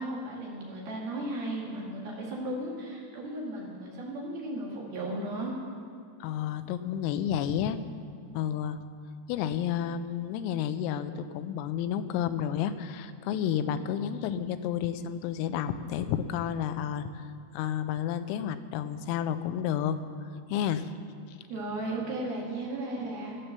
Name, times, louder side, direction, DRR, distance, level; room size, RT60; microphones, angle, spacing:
voice 1, 0.0-5.5 13.7-13.9 21.5-23.4, right 1 dB, 55° right, -3 dB, 3.5 m, -35 dB
voice 2, 6.2-7.8 8.3-8.8 9.3-17.2 17.5-20.0 20.5-20.9 21.3-21.4, left 9 dB, 85° left, 11 dB, 3.4 m, -31 dB
14.5 x 12.5 x 6.7 m, 2.3 s
omnidirectional pair, 5.9 m